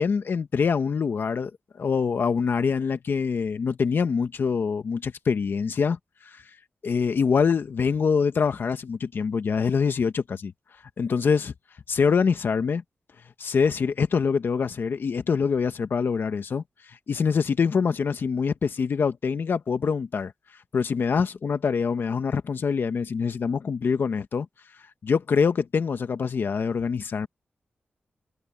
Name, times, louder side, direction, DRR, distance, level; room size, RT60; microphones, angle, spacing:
voice 1, 0.0-1.5 1.8-6.4 6.8-10.5 11.0-11.5 11.9-12.8 13.4-20.3 20.7-24.5 25.0-27.3, left 5 dB, 75° left, 1.3 m, -25 dB
cardioid pair, 55°, 4 cm